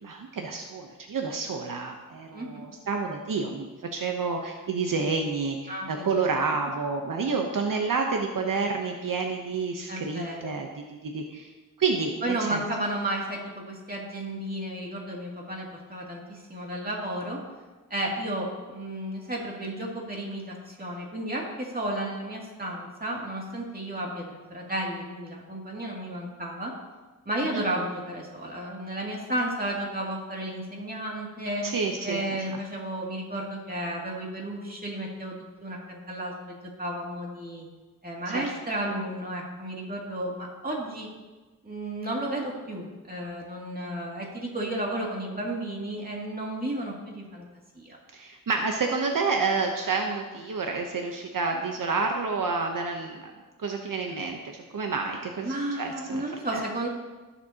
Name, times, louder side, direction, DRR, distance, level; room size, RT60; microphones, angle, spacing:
voice 1, 0.0-11.5 11.8-12.6 27.5-27.6 31.6-32.6 38.3-38.5 48.1-53.2 53.6-54.4 54.7-56.2 56.5-56.6, right 4 dB, 70° right, 3 dB, 0.9 m, -29 dB
voice 2, 2.3-2.7 5.7-6.2 9.9-10.5 12.2-17.4 17.9-26.7 27.3-31.6 32.0-37.7 38.0-41.1 41.6-47.4 47.8-48.0 55.4-56.9, right 1 dB, 25° right, -2 dB, 2.5 m, -33 dB
18.0 x 7.3 x 2.9 m, 1.2 s
wide cardioid pair, 100°, 34 cm